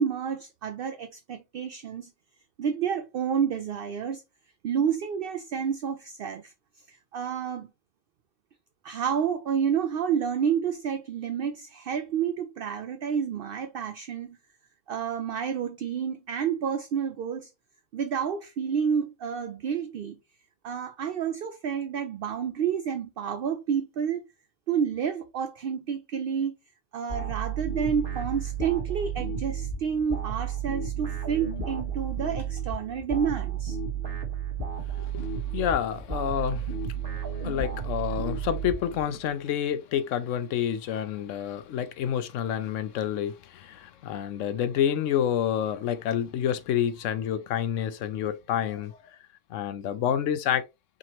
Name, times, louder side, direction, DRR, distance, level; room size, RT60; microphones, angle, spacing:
voice 1, 0.0-2.1 2.6-4.2 4.6-6.5 6.9-7.7 8.8-14.4 14.9-17.5 17.9-20.2 20.6-24.2 24.7-26.5 26.9-33.8, right 7 dB, 60° right, 0.6 m, -29 dB
sound 1, 27.1-39.3, right 7 dB, 45° right, 1.4 m, -32 dB
voice 2, 34.9-36.8 37.1-49.0 49.5-50.7, left 9 dB, 75° left, 0.9 m, -28 dB
5.0 x 2.9 x 2.9 m
omnidirectional pair, 1.3 m